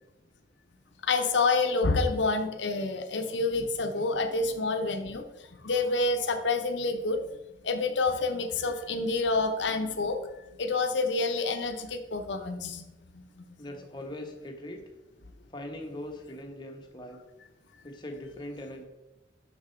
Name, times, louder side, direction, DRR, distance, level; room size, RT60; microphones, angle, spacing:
voice 1, 1.0-5.3 5.6-7.2 7.6-10.2 10.6-12.8 13.1-13.4, left 3 dB, 85° left, 6 dB, 0.8 m, -28 dB
voice 2, 13.6-14.8 15.5-17.2 17.8-18.8, left 1 dB, 25° left, 2 dB, 1.0 m, -41 dB
6.1 x 6.0 x 4.4 m, 1.0 s
head